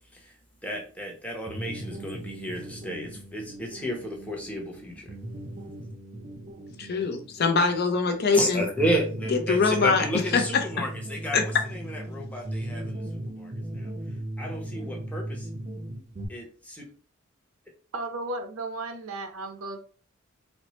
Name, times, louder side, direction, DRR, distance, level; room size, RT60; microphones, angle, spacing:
voice 1, 0.6-5.1 8.3-13.9 14.4-15.5 16.3-16.8, equal, 5° left, -1 dB, 0.7 m, -32 dB
sound 1, 1.5-16.3, right 1 dB, 35° right, 0.5 m, -37 dB
voice 2, 6.8-8.7 9.3-10.1 10.3-10.4 10.8-10.9 11.3-11.4, left 4 dB, 50° left, 5 dB, 0.5 m, -23 dB
voice 3, 17.9-19.8, right 2 dB, 80° right, 6 dB, 0.6 m, -34 dB
4.2 x 2.1 x 3.0 m, 0.40 s
head